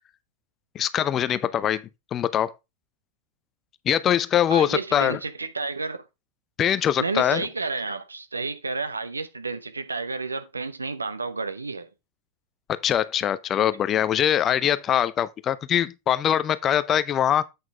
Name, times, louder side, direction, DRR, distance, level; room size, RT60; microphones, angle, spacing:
voice 1, 0.7-1.8 2.1-2.5 3.9-5.2 6.6-7.4 12.8-17.4, left 10 dB, 30° left, 0.6 m, -23 dB
voice 2, 4.5-6.0 7.0-11.9, right 3 dB, 80° right, 0.9 m, -31 dB
8.3 x 6.0 x 3.4 m
figure-of-eight pair, 90°, 0 cm